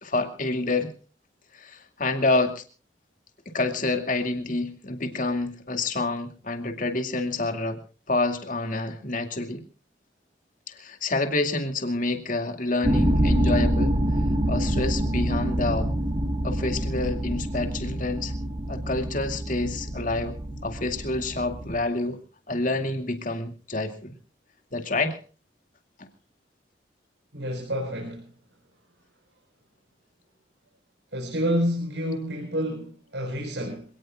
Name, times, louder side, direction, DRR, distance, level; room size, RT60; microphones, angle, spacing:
voice 1, 0.0-0.9 1.5-2.6 3.5-7.8 8.1-9.6 10.7-14.0 14.5-15.9 16.4-18.3 18.7-20.4 20.6-22.2 22.5-24.1 24.7-25.2 26.0-26.1, left 2 dB, 45° left, 6 dB, 2.4 m, -28 dB
sound 1, 12.8-21.8, right 1 dB, 30° right, 1.6 m, -26 dB
voice 2, 27.3-28.3 31.1-33.9, equal, 75° right, -1 dB, 5.0 m, -28 dB
26.5 x 18.5 x 2.5 m, 0.37 s
head